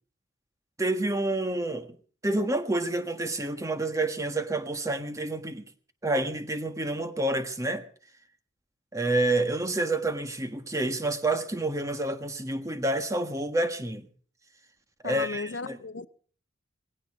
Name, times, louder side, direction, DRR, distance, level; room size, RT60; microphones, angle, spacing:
voice 1, 0.8-2.0 2.2-5.6 6.0-7.8 8.9-14.1 15.0-15.8, right 2 dB, 15° right, 1.4 m, -28 dB
voice 2, 15.0-16.1, left 4 dB, 70° left, 0.7 m, -35 dB
18.5 x 16.5 x 4.8 m
head